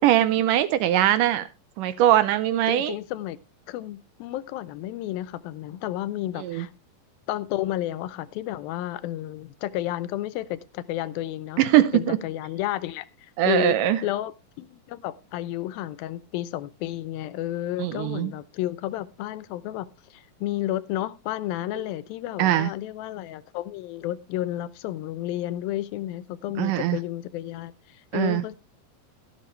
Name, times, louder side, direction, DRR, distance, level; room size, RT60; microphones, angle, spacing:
voice 1, 0.0-1.5 1.8-2.9 6.4-6.7 11.6-12.2 13.4-14.0 17.8-18.3 22.4-22.7 26.6-27.0 28.1-28.4, right 12 dB, 75° right, 2.1 m, -21 dB
voice 2, 2.7-3.4 3.7-6.7 7.3-11.6 11.9-13.8 14.0-14.3 14.6-28.6, left 14 dB, 85° left, 2.5 m, -31 dB
12.5 x 11.5 x 3.2 m
omnidirectional pair, 4.1 m